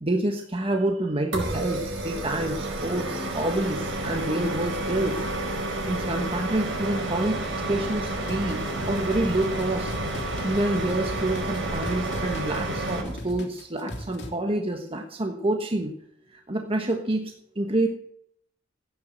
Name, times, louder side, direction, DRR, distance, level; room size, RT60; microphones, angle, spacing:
voice 1, 0.0-5.2 5.8-9.9 10.4-15.9 16.5-17.9, right 1 dB, 30° right, 3 dB, 1.3 m, -28 dB
sound 1, 1.3-13.0, right 1 dB, 90° right, 5.0 m, -30 dB
sound 2, 8.3-14.3, equal, 60° left, 3.1 m, -39 dB
15.5 x 9.6 x 7.8 m, 0.71 s
head